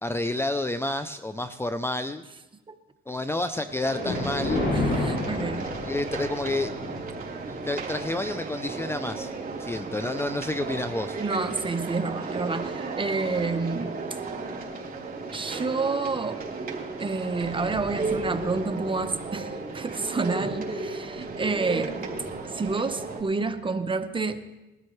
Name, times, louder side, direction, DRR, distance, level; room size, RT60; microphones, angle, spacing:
voice 1, 0.0-2.2 3.1-4.6 5.8-6.7 7.5-9.3 9.6-11.2, left 2 dB, 10° left, 10 dB, 0.5 m, -29 dB
Thunder, 3.7-12.2 12.7-13.0 13.7-13.8 14.1-14.2 16.4-16.6 16.9-17.0 17.2-23.2, left 2 dB, 60° left, 6.2 m, -35 dB
sound 1, 3.8-23.2, right 3 dB, 45° right, 3.3 m, -34 dB
voice 2, 4.7-5.7 11.2-14.0 15.3-16.4 17.0-22.0 22.4-24.6, right 4 dB, 25° right, 9 dB, 1.0 m, -29 dB
20.5 x 13.0 x 3.2 m, 1.1 s
cardioid pair, 90°, 20 cm